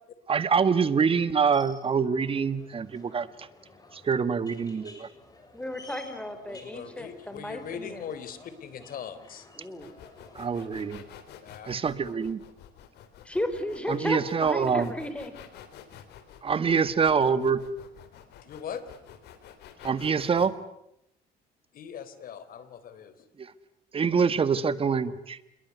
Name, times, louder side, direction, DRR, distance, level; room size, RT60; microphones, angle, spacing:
voice 1, 0.3-3.5 3.9-5.1 10.3-11.0 11.7-12.4 13.9-14.9 16.4-17.6 19.8-20.5 23.4-23.5 23.9-25.4, right 6 dB, 35° right, 14 dB, 1.8 m, -25 dB
sound 1, 1.5-10.9, left 2 dB, 20° left, 7.3 m, -53 dB
voice 2, 5.5-8.0 9.6-9.9 13.2-15.3, left 1 dB, 5° left, 9 dB, 4.3 m, -34 dB
voice 3, 6.5-9.5 11.4-11.7 18.4-18.8 21.7-23.3, left 8 dB, 60° left, 13 dB, 3.7 m, -40 dB
sound 2, 9.8-20.5, left 9 dB, 75° left, 3.9 m, -49 dB
28.0 x 22.0 x 9.6 m, 0.80 s
cardioid pair, 110°, 17 cm